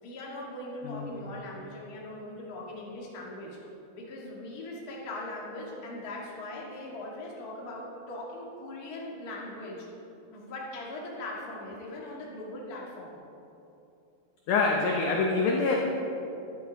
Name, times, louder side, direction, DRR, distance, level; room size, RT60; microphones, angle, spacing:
voice 1, 0.0-3.6 3.9-9.9 10.3-13.2, left 1 dB, 40° left, -4 dB, 1.4 m, -40 dB
voice 2, 0.8-1.3 14.5-15.8, left 4 dB, 80° left, 0 dB, 1.7 m, -26 dB
12.0 x 12.0 x 4.1 m, 2.8 s
omnidirectional pair, 4.7 m